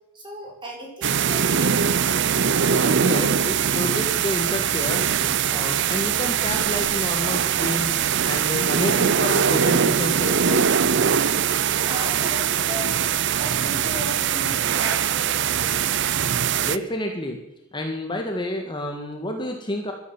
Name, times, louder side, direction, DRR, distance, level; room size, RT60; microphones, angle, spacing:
voice 1, 0.1-1.7 11.7-15.9, equal, 20° right, 0 dB, 4.7 m, -36 dB
sound 1, 1.0-16.8, right 8 dB, 55° right, 0.6 m, -22 dB
voice 2, 2.6-5.0 5.5-7.9 8.2-10.6 16.6-17.4 17.7-19.9, left 1 dB, 20° left, 3 dB, 1.8 m, -29 dB
15.5 x 12.5 x 7.2 m, 0.89 s
head